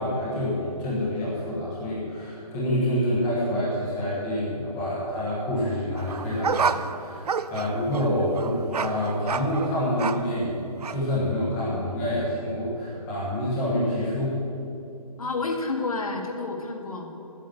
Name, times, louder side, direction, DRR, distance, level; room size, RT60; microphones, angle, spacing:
voice 1, 0.0-14.4, equal, 10° left, -7 dB, 1.1 m, -27 dB
sound 1, 6.0-10.4 10.8-11.0, right 6 dB, 85° right, 0.6 m, -30 dB
voice 2, 15.2-17.1, left 3 dB, 70° left, 3 dB, 1.9 m, -29 dB
9.2 x 8.3 x 8.9 m, 2.8 s
hypercardioid pair, 180°, 19 cm